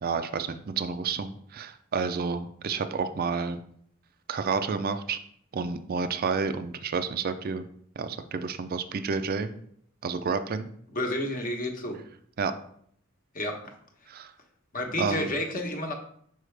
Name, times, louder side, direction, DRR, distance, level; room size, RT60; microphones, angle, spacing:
voice 1, 0.0-3.6 4.3-5.2 5.5-7.6 8.0-9.5 10.0-10.7 12.4-12.5 14.1-14.3 15.0-15.3, right 5 dB, 45° right, 10 dB, 0.4 m, -30 dB
voice 2, 10.9-12.0 13.3-13.7 14.7-15.9, left 1 dB, 40° left, 2 dB, 1.0 m, -30 dB
6.4 x 4.7 x 3.3 m, 0.65 s
head